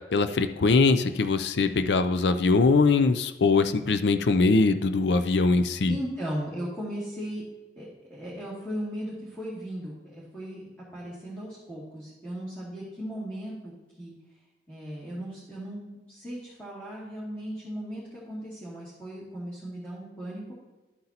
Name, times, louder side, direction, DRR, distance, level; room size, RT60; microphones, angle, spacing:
voice 1, 0.1-6.0, left 3 dB, 70° left, 10 dB, 0.5 m, -22 dB
voice 2, 5.9-7.4 7.8-10.7 10.9-13.7 14.0-14.1 14.7-20.5, equal, 10° left, -9 dB, 2.4 m, -37 dB
12.5 x 7.8 x 2.9 m, 1.1 s
head